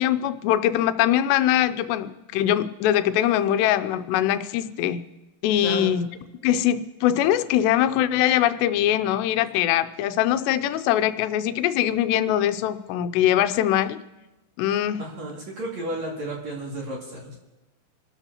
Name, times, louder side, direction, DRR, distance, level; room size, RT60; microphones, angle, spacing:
voice 1, 0.0-5.0 5.4-6.1 6.4-14.0 14.6-15.0, left 11 dB, 90° left, 11 dB, 2.8 m, -22 dB
voice 2, 5.6-6.0 15.0-17.3, right 1 dB, 45° right, -3 dB, 3.1 m, -33 dB
28.5 x 13.0 x 2.9 m, 1.0 s
omnidirectional pair, 4.8 m